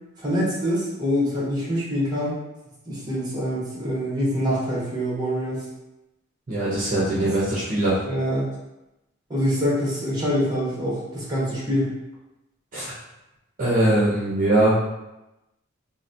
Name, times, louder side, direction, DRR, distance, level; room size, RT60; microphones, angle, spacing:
voice 1, 0.2-2.4 2.9-5.6 8.1-8.5 9.3-11.9, equal, 20° right, -6 dB, 0.9 m, -25 dB
voice 2, 6.5-8.0 12.7-12.9 13.6-14.8, right 1 dB, 40° right, -7 dB, 0.7 m, -21 dB
3.8 x 2.1 x 2.6 m, 0.95 s
head